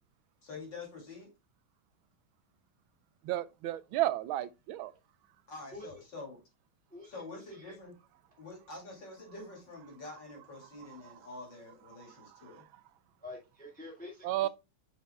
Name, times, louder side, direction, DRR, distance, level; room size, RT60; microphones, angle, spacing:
voice 1, 0.4-1.3 5.5-6.4 7.0-7.9 8.4-12.7, left 3 dB, 65° left, 3.2 m, -46 dB
voice 2, 3.2-4.9 14.2-14.5, right 14 dB, 90° right, 1.4 m, -32 dB
voice 3, 6.9-7.2 7.7-7.8 13.2-14.5, left 2 dB, 5° left, 1.8 m, -47 dB
6.8 x 6.5 x 2.3 m
omnidirectional pair, 2.2 m